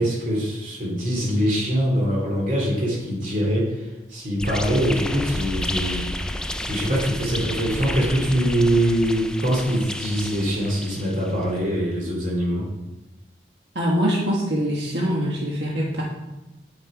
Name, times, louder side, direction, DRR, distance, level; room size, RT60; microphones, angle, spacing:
voice 1, 0.0-6.2 6.6-12.7, equal, 45° right, -3 dB, 2.5 m, -23 dB
sound 1, 4.4-11.4, left 1 dB, 5° left, 0.3 m, -31 dB
voice 2, 13.7-16.0, equal, 70° right, -3 dB, 1.2 m, -23 dB
9.1 x 6.7 x 4.9 m, 1.0 s
head